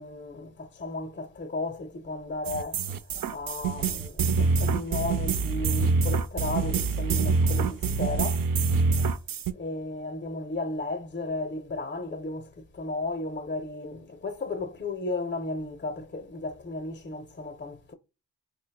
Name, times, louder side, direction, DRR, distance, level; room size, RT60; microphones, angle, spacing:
voice 1, 0.0-2.8 3.3-8.4 9.5-17.9, left 2 dB, 30° left, 0.6 m, -34 dB
sound 1, 2.4-9.5, right 4 dB, 60° right, 0.5 m, -25 dB
4.7 x 2.8 x 2.3 m
cardioid pair, 45°, 38 cm